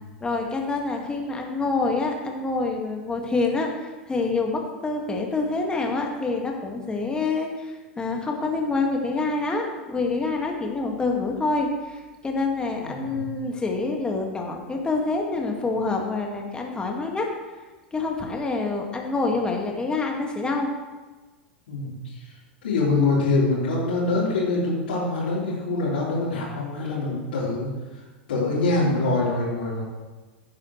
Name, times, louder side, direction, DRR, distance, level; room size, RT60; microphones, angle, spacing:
voice 1, 0.2-17.3 17.9-20.7, left 3 dB, 15° left, 1 dB, 2.0 m, -27 dB
voice 2, 12.8-13.2 21.7-22.3 22.6-28.0 28.3-29.8, left 3 dB, 65° left, -10 dB, 4.2 m, -24 dB
15.5 x 9.6 x 3.3 m, 1.3 s
figure-of-eight pair, 90°, 6 cm